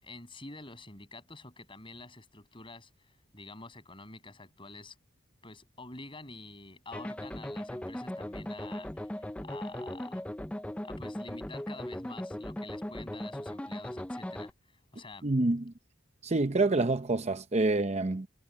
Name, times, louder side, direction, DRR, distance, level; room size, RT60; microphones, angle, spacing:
voice 1, 0.0-2.9 3.3-4.9 5.4-10.2 10.8-14.5 14.9-15.3, left 2 dB, 25° left, 6.8 m, -48 dB
sound 1, 6.9-14.5, left 1 dB, 5° left, 0.5 m, -38 dB
voice 2, 15.2-15.7 16.2-18.3, right 2 dB, 35° right, 0.7 m, -27 dB
head